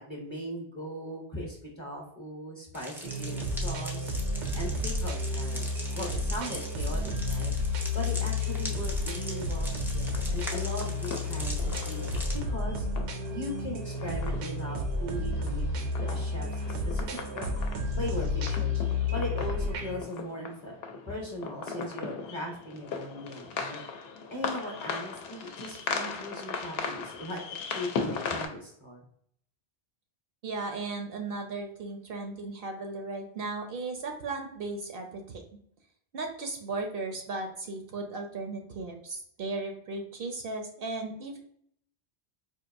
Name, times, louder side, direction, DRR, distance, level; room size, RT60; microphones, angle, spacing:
voice 1, 0.0-4.1 4.5-12.9 13.3-17.1 17.3-17.5 18.0-18.8 19.1-20.7 21.1-23.8 24.3-27.4 27.7-29.0, equal, 30° left, -1 dB, 0.7 m, -39 dB
sound 1, 2.7-12.4, equal, 5° right, 0.3 m, -41 dB
sound 2, 3.0-20.0, left 2 dB, 85° right, 0.9 m, -31 dB
sound 3, 10.1-28.5, left 5 dB, 65° left, 0.8 m, -39 dB
voice 2, 30.4-35.4 36.1-41.4, right 3 dB, 65° right, 4 dB, 0.7 m, -36 dB
4.5 x 2.5 x 2.5 m, 0.67 s
omnidirectional pair, 1.2 m